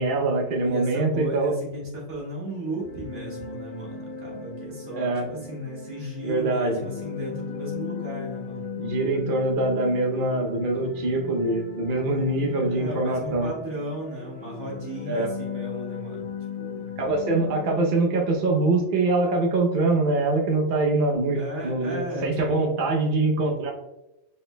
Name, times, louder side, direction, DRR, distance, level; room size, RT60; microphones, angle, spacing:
voice 1, 0.0-1.5 4.9-5.3 6.2-6.8 8.8-13.5 15.1-15.3 17.0-23.7, right 2 dB, 50° right, 1 dB, 0.9 m, -24 dB
voice 2, 0.6-8.7 12.7-16.9 21.4-22.6, right 1 dB, 85° right, -4 dB, 2.0 m, -35 dB
sound 1, 2.6-18.3, left 5 dB, 45° left, 0.4 m, -38 dB
5.4 x 4.4 x 2.2 m, 0.93 s
omnidirectional pair, 1.2 m